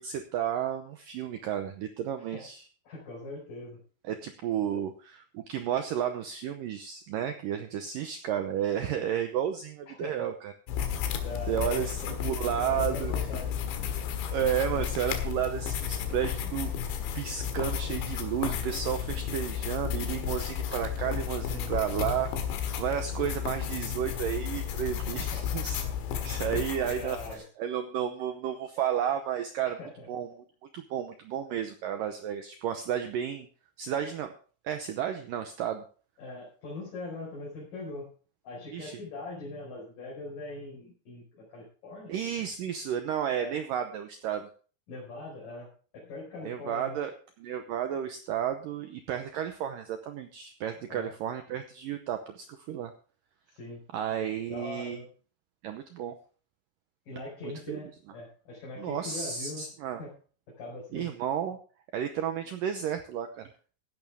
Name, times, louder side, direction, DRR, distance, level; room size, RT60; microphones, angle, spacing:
voice 1, 0.0-2.7 4.1-10.5 11.5-13.1 14.3-16.7 17.1-25.8 26.2-29.8 30.1-30.4 30.7-33.5 33.8-34.3 34.6-35.8 38.7-39.0 42.1-44.5 46.4-47.1 47.4-52.9 53.9-55.0 55.6-56.2 57.4-57.8 58.8-60.0 60.9-61.6 61.9-63.5, right 9 dB, 85° right, 7 dB, 1.9 m, -32 dB
voice 2, 2.8-3.8 4.6-4.8 9.9-10.3 10.9-13.5 21.5-21.7 25.1-25.6 26.5-27.4 29.8-30.1 36.2-38.1 38.4-42.2 43.4-43.6 44.9-45.7 45.9-47.0 50.9-51.1 53.5-53.8 54.5-55.1 57.1-59.7 60.0-60.1 60.6-61.1, left 2 dB, 50° left, -5 dB, 6.2 m, -42 dB
sound 1, 10.7-27.4, left 8 dB, 80° left, 3.9 m, -33 dB
15.5 x 11.0 x 3.6 m, 0.40 s
omnidirectional pair, 5.2 m